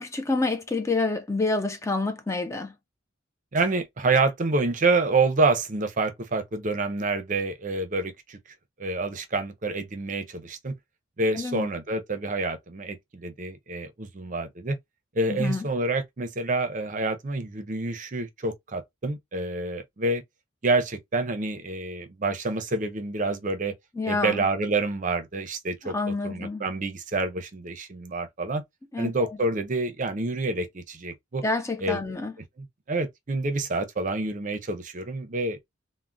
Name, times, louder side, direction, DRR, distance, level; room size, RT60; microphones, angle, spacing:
voice 1, 0.0-2.7 11.4-11.7 15.3-15.6 24.0-24.4 25.8-26.6 28.9-29.3 31.4-32.3, left 3 dB, 15° left, 0.3 m, -28 dB
voice 2, 3.5-8.4 8.8-10.7 11.2-14.8 15.1-20.2 20.6-23.7 24.0-28.6 29.0-31.4 31.8-32.0 32.6-35.6, right 3 dB, 40° right, 0.6 m, -27 dB
3.4 x 2.1 x 2.5 m
head